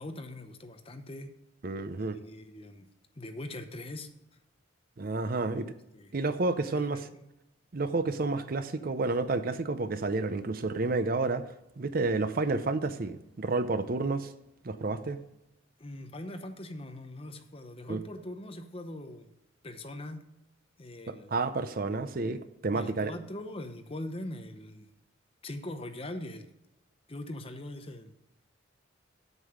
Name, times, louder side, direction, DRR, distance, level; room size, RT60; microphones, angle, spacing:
voice 1, 0.0-1.3 2.0-2.9 3.1-4.1 5.9-6.2 6.7-7.2 15.8-19.3 19.6-20.2 20.8-21.3 22.7-24.9 25.4-26.5 27.1-28.1, left 1 dB, 30° left, 0.8 m, -41 dB
voice 2, 1.6-2.2 5.0-5.7 6.1-7.1 7.7-11.5 11.8-14.3 14.6-15.2 17.9-18.0 21.1-23.1, right 3 dB, 45° right, 0.6 m, -30 dB
8.1 x 7.6 x 5.0 m
head